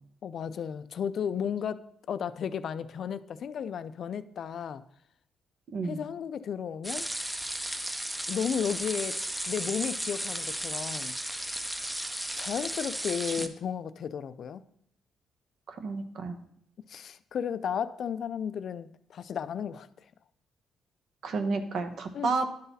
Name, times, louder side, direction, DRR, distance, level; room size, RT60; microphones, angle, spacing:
voice 1, 0.2-4.8 5.8-7.1 8.3-9.2 9.5-11.1 12.4-14.6 16.9-19.9 22.1-22.3, left 7 dB, 60° left, 0.4 m, -34 dB
sound 1, 6.8-13.5, right 1 dB, 10° right, 0.6 m, -34 dB
voice 2, 15.7-16.4 21.2-22.4, right 4 dB, 65° right, 0.9 m, -31 dB
11.0 x 4.0 x 4.0 m
cardioid pair, 90°, 0 cm